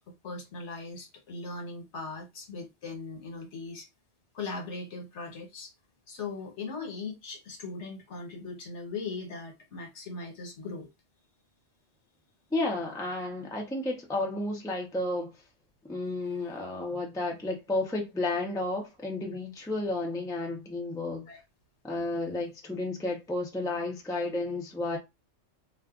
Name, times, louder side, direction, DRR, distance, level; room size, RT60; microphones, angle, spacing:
voice 1, 0.2-3.9 4.3-5.7 6.1-10.9 16.2-16.6 21.3-21.4, left 3 dB, 70° left, 1.3 m, -39 dB
voice 2, 12.5-15.3 15.8-21.3 21.8-25.0, left 2 dB, 5° left, 0.4 m, -32 dB
2.4 x 2.3 x 3.5 m
omnidirectional pair, 1.2 m